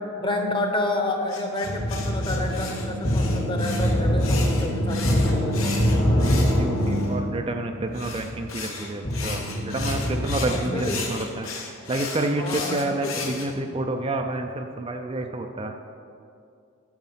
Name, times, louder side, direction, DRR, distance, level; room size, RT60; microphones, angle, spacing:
voice 1, 0.2-6.3 10.4-11.0 12.4-13.3, left 1 dB, 25° left, 4 dB, 0.9 m, -30 dB
sound 1, 1.3-7.1 7.9-13.5, left 5 dB, 80° left, 1.4 m, -36 dB
sound 2, 1.6-11.0, equal, 45° left, 1.2 m, -24 dB
voice 2, 6.2-11.5 11.9-15.7, right 2 dB, 25° right, 4 dB, 0.4 m, -29 dB
9.1 x 6.6 x 5.6 m, 2.4 s
head